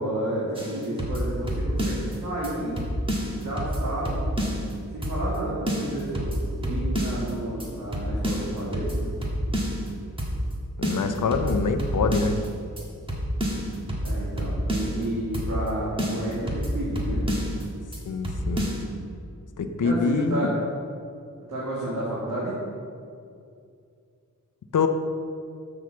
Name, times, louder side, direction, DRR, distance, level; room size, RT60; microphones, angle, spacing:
voice 1, 0.0-2.7 3.4-4.3 4.9-9.1 14.0-17.2 19.8-20.5 21.5-22.5, right 1 dB, 75° right, -8 dB, 2.3 m, -31 dB
sound 1, 0.5-2.1 2.4-2.5 2.8-4.7 5.0-5.4 5.7-7.3 7.6-7.7 7.9-9.9 10.2-10.5 10.8-12.5 12.8-12.9 13.1-15.0 15.3-15.7 16.0-17.6 17.9-18.0 18.2-18.8, equal, 15° right, 1.5 m, -28 dB
voice 2, 10.8-12.4 18.1-18.7 19.6-20.5 24.7-24.9, left 5 dB, 65° left, 7 dB, 0.7 m, -25 dB
6.4 x 6.2 x 6.9 m, 2.4 s
wide cardioid pair, 125°, 33 cm